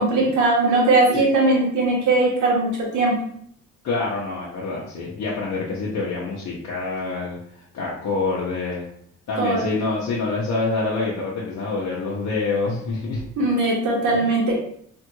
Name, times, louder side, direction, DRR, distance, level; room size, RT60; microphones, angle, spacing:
voice 1, 0.0-3.1 9.4-9.6 13.4-14.5, right 2 dB, 75° right, -2 dB, 1.3 m, -19 dB
voice 2, 3.8-8.9 9.3-13.2 14.1-14.2, left 3 dB, 65° left, -5 dB, 0.8 m, -26 dB
3.4 x 3.0 x 2.2 m, 0.66 s
cardioid pair, 90°, 30 cm